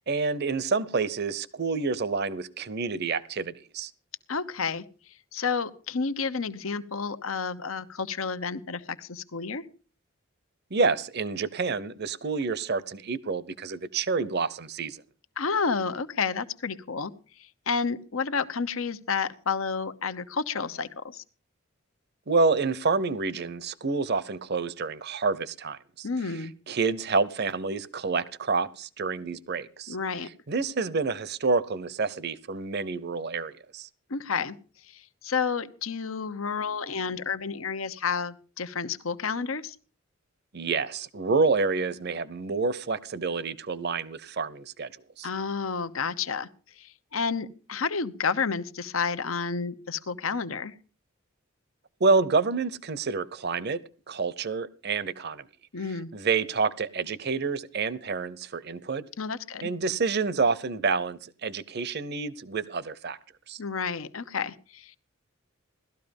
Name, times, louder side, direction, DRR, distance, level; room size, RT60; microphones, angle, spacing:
voice 1, 0.1-3.9 10.7-15.0 22.3-26.1 26.7-30.0 30.5-33.9 40.5-44.9 45.2-45.3 52.0-53.8 54.1-55.5 56.1-59.0 59.6-63.2 63.5-63.6, right 4 dB, 50° right, 0.8 m, -28 dB
voice 2, 4.3-4.8 5.3-9.7 15.4-17.1 17.4-21.2 26.0-26.5 29.9-30.3 34.1-34.5 34.9-39.8 45.2-46.5 46.8-50.7 55.7-56.1 59.2-59.7 63.6-65.0, left 5 dB, 80° left, 1.0 m, -30 dB
18.0 x 13.0 x 5.3 m
head